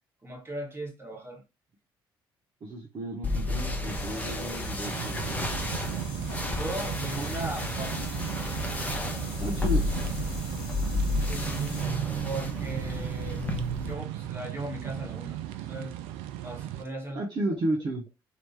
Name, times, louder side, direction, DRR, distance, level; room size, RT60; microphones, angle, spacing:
voice 1, 0.2-1.4 6.6-7.9 11.2-11.7 12.2-13.4 13.8-15.4 15.7-15.9 16.4-17.2, right 1 dB, 20° right, 1.6 m, -38 dB
voice 2, 2.6-5.7 9.4-9.9 17.2-18.0, right 1 dB, 40° right, 0.9 m, -33 dB
sound 1, 3.2-13.9, left 2 dB, 15° left, 0.8 m, -32 dB
sound 2, 3.9-11.9, left 5 dB, 65° left, 0.8 m, -46 dB
sound 3, 4.8-16.8, right 13 dB, 65° right, 0.4 m, -36 dB
2.9 x 2.9 x 3.4 m
figure-of-eight pair, 50°, 12 cm